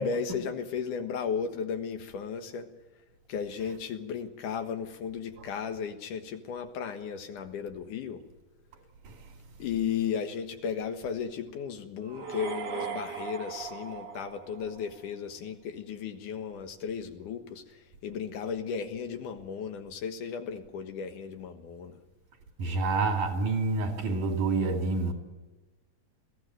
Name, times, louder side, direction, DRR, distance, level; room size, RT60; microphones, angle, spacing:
voice 1, 0.0-2.7 3.3-8.2 9.6-17.6 18.0-22.0, left 7 dB, 85° left, 3.0 m, -35 dB
sound 1, 12.0-15.1, right 5 dB, 50° right, 1.3 m, -38 dB
voice 2, 22.6-25.1, right 3 dB, 90° right, 4.2 m, -28 dB
21.5 x 16.0 x 7.7 m
omnidirectional pair, 3.5 m